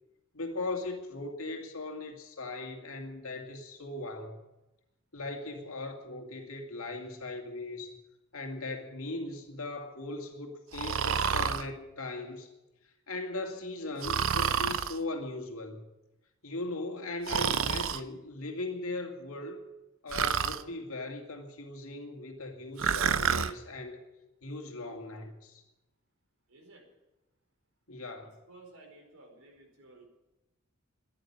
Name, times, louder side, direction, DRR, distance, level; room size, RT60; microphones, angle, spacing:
voice 1, 0.3-4.4 5.1-8.0 8.3-12.5 13.1-15.9 16.4-19.6 20.0-24.0 24.4-25.6 27.9-28.3, left 2 dB, 75° left, 4 dB, 2.4 m, -39 dB
Breathing, 10.7-11.7 14.0-15.0 17.3-18.0 20.1-20.6 22.8-23.5, right 7 dB, 65° right, 0.7 m, -28 dB
voice 2, 26.5-26.8 28.2-30.0, right 2 dB, 80° right, 2 dB, 4.7 m, -55 dB
13.5 x 11.0 x 9.9 m, 0.98 s
head